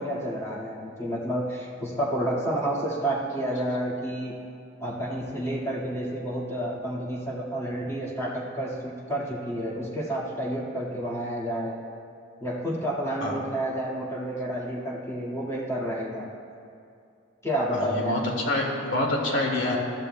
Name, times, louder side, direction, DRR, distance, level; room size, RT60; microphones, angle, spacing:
voice 1, 0.0-4.4 4.8-11.7 12.4-16.3 17.4-18.2, right 1 dB, 15° left, -5 dB, 1.8 m, -30 dB
voice 2, 17.7-19.8, left 1 dB, 75° left, 0 dB, 2.0 m, -26 dB
21.0 x 13.0 x 2.2 m, 2.5 s
head